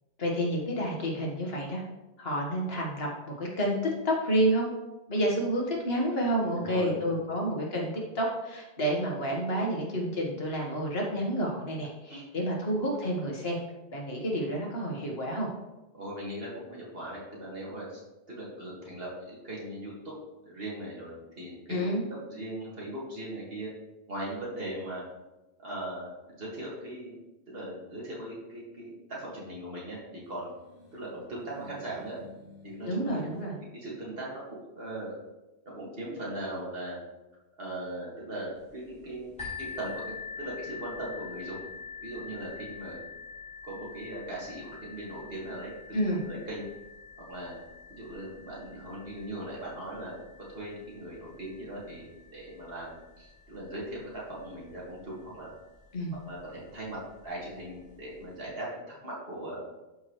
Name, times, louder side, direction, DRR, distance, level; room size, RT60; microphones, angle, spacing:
voice 1, 0.2-1.8 2.2-3.8 4.0-4.7 5.1-13.6 13.9-15.5 21.7-22.1 32.8-33.6 45.9-46.2 55.9-56.1, right 1 dB, 65° left, -2 dB, 1.7 m, -29 dB
voice 2, 6.6-7.2 12.1-12.2 15.9-18.0 18.3-20.1 20.4-21.9 22.3-23.7 24.1-25.0 25.6-27.2 27.5-30.5 30.9-32.2 32.6-33.1 33.7-34.4 34.7-35.1 35.7-37.0 37.6-41.6 42.0-43.0 43.6-46.0 46.2-46.7 47.3-47.6 47.9-50.2 50.5-55.5 56.2-57.0 57.2-59.6, right 1 dB, 60° right, -5 dB, 2.3 m, -39 dB
sound 1, 30.2-33.5, left 2 dB, 85° left, 1.9 m, -52 dB
sound 2, 39.4-54.9 55.7-55.8 56.3-56.4, left 5 dB, 5° left, 3.0 m, -45 dB
12.5 x 4.6 x 3.1 m, 1.1 s
omnidirectional pair, 1.1 m